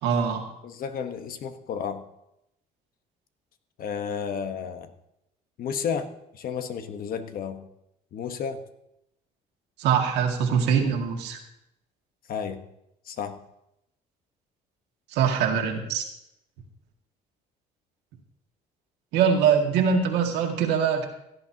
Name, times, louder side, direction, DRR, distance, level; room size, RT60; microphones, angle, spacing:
voice 1, 0.0-0.5 9.8-11.4 15.1-16.1 19.1-21.1, right 7 dB, 85° right, 2 dB, 2.1 m, -23 dB
voice 2, 0.6-2.0 3.8-4.9 5.6-6.1 6.3-7.7 8.1-8.6 12.3-12.6 13.1-13.4, left 7 dB, 60° left, 8 dB, 1.2 m, -32 dB
16.5 x 11.0 x 2.9 m, 0.83 s
cardioid pair, 110°, 17 cm